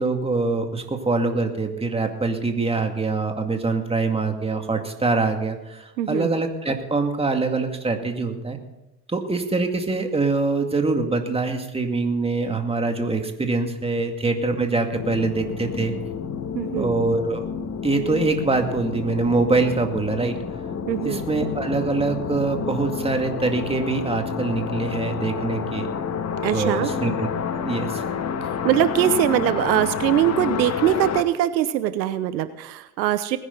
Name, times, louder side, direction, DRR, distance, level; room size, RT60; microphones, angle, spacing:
voice 1, 0.0-8.6 9.1-15.9 16.7-17.4 17.8-20.4 21.0-25.9 26.5-27.3 27.6-28.0, right 3 dB, 10° right, 5 dB, 2.2 m, -24 dB
voice 2, 6.0-6.3 16.5-16.9 20.9-21.2 26.4-26.9 28.6-33.4, right 11 dB, 85° right, 13 dB, 1.0 m, -22 dB
sound 1, 14.9-31.2, left 7 dB, 30° left, 1.4 m, -29 dB
20.0 x 10.5 x 4.0 m, 1.0 s
hypercardioid pair, 95°, 50 cm